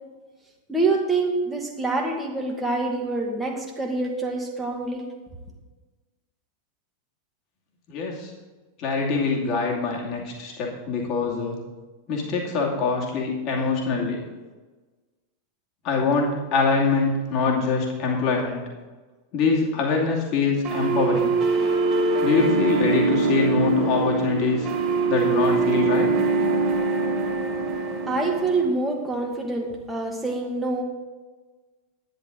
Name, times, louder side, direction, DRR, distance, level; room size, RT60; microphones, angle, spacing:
voice 1, 0.7-5.0 28.1-30.8, right 3 dB, 5° right, -1 dB, 1.6 m, -26 dB
voice 2, 7.9-8.3 8.8-11.6 12.1-14.2 15.8-18.6 19.3-21.3 22.2-24.7 25.1-26.1, left 4 dB, 40° left, -1 dB, 2.4 m, -24 dB
sound 1, 20.6-28.6, right 4 dB, 30° right, 2.4 m, -23 dB
10.5 x 10.0 x 3.9 m, 1.3 s
figure-of-eight pair, 90°, 0 cm